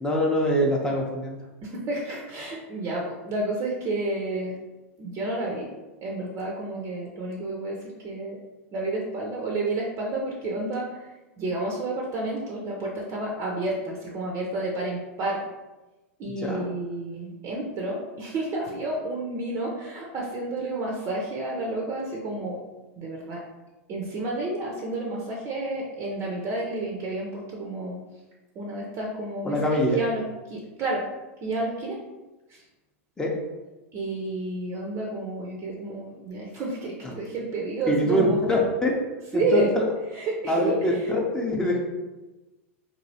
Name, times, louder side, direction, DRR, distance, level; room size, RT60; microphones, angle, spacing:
voice 1, 0.0-1.4 16.4-16.6 29.4-30.0 33.2-33.3 37.0-37.1 37.9-38.9 39.3-39.8 40.5-41.8, left 1 dB, 10° left, -2 dB, 0.6 m, -24 dB
voice 2, 1.6-4.6 5.0-5.7 6.0-7.8 8.0-8.4 8.7-10.9 11.4-15.4 16.2-22.6 23.0-23.4 23.9-28.0 28.6-29.5 29.9-30.2 30.5-31.1 31.4-32.0 33.9-38.5 39.3-39.7 40.1-40.8, right 2 dB, 35° right, -2 dB, 0.6 m, -30 dB
3.0 x 2.7 x 2.7 m, 1.1 s
hypercardioid pair, 105°, 8 cm